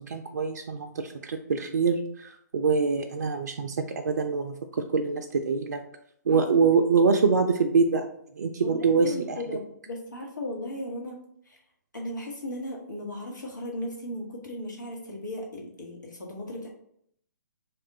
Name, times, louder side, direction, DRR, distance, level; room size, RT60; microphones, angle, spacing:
voice 1, 0.0-3.8 4.0-4.5 4.9-5.8 6.3-8.0 8.4-9.4, right 4 dB, 70° right, 4 dB, 0.4 m, -24 dB
voice 2, 6.3-6.7 8.6-11.2 11.4-11.6 11.9-16.7, left 1 dB, 85° left, -2 dB, 1.1 m, -36 dB
3.4 x 2.4 x 3.8 m, 0.71 s
figure-of-eight pair, 135°, 10 cm